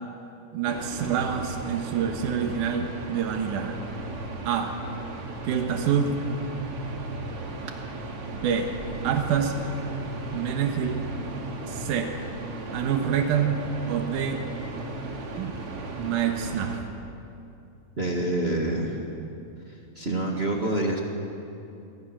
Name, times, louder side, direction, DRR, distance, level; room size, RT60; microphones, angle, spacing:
voice 1, 0.5-3.8 4.5-4.8 5.4-6.2 8.4-8.8 9.0-9.6 10.3-11.1 11.7-12.1 12.7-13.6 13.9-14.4 15.4-15.6 16.0-16.8, right 8 dB, 85° right, 4 dB, 2.8 m, -26 dB
sound 1, 0.7-16.8, right 2 dB, 50° right, 2.9 m, -36 dB
voice 2, 18.0-19.0 19.7-21.0, right 1 dB, 25° right, 0 dB, 1.9 m, -27 dB
26.5 x 23.5 x 6.2 m, 2.7 s
omnidirectional pair, 3.5 m